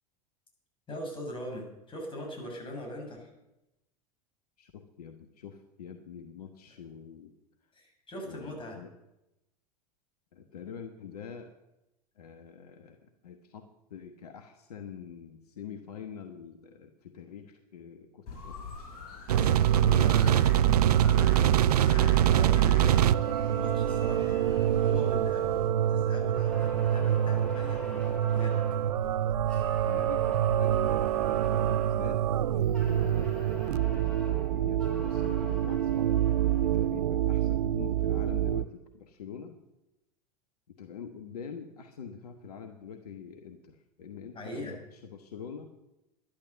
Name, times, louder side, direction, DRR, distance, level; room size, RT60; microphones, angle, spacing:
voice 1, 0.9-3.3 7.7-8.8 19.3-19.5 19.8-20.4 21.0-21.4 21.7-23.0 23.5-24.4 24.8-28.6 44.3-44.8, equal, 25° left, 1 dB, 6.6 m, -41 dB
voice 2, 4.6-7.3 8.2-8.9 10.3-11.5 12.2-18.7 19.4-20.5 29.8-31.0 31.3-32.2 32.5-33.3 33.6-36.1 36.6-39.6 40.7-45.7, left 7 dB, 70° left, 6 dB, 1.3 m, -45 dB
sound 1, 18.3-25.7, left 5 dB, 50° left, 6.6 m, -44 dB
sound 2, 19.3-38.6, right 11 dB, 70° right, 0.5 m, -25 dB
sound 3, 22.8-25.9 26.3-28.9 29.4-32.1 32.7-37.0, left 1 dB, 5° left, 5.2 m, -46 dB
12.0 x 11.0 x 6.8 m, 0.93 s
figure-of-eight pair, 80°, 20 cm